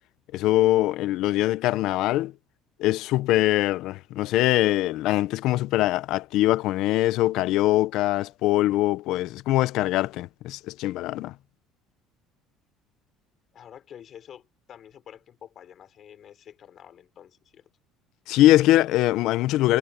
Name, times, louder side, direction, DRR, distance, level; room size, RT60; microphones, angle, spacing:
voice 1, 0.3-2.3 2.8-11.3 18.3-19.8, left 16 dB, 60° left, 0.6 m, -22 dB
voice 2, 13.5-17.7, left 9 dB, 35° left, 4.8 m, -48 dB
cardioid pair, 165°, 0 cm